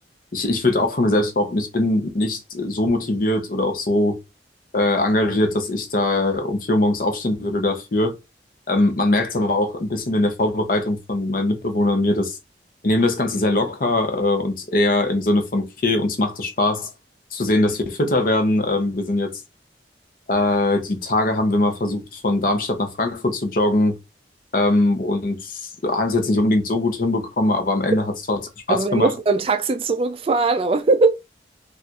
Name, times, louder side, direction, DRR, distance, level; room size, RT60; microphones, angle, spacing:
voice 1, 0.3-4.2 4.7-8.2 8.7-12.4 12.8-16.9 17.3-19.4 20.3-24.0 24.5-28.4 28.7-29.1, left 2 dB, 50° left, 0.7 m, -21 dB
voice 2, 28.7-31.1, right 3 dB, 30° right, 0.3 m, -20 dB
4.1 x 2.4 x 2.4 m
head